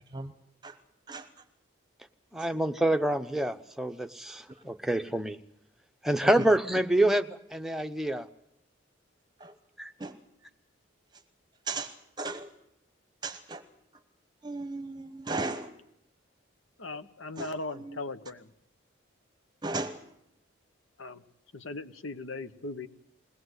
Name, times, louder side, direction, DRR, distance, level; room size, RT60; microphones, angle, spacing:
voice 1, 2.3-5.4 6.0-8.3 9.8-9.9, right 1 dB, ahead, 6 dB, 0.8 m, -27 dB
voice 2, 11.7-12.5 13.2-13.6 14.4-15.7 17.4-17.5 19.6-20.0, right 3 dB, 20° right, 9 dB, 1.0 m, -35 dB
voice 3, 16.8-18.5 21.0-21.2 21.5-22.9, left 2 dB, 85° left, 11 dB, 1.2 m, -38 dB
21.5 x 18.5 x 8.0 m, 0.77 s
head